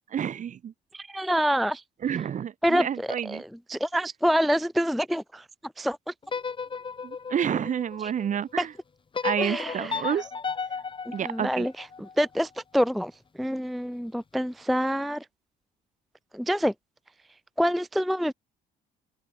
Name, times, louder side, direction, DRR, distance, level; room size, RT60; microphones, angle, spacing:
voice 1, 0.1-0.7 2.0-3.4 7.0-8.7 9.2-10.3 11.1-11.7, right 9 dB, 45° right, 3.8 m, -29 dB
voice 2, 0.9-1.8 2.6-5.4 5.8-6.0 8.0-8.1 8.6-8.7 9.4-10.1 11.2-11.9 12.2-13.1 13.4-15.3 16.3-16.7 17.6-18.3, equal, ahead, 0.3 m, -26 dB
sound 1, 6.2-8.4 9.1-12.3, left 5 dB, 30° left, 4.8 m, -34 dB
open air
cardioid pair, 110°, 17 cm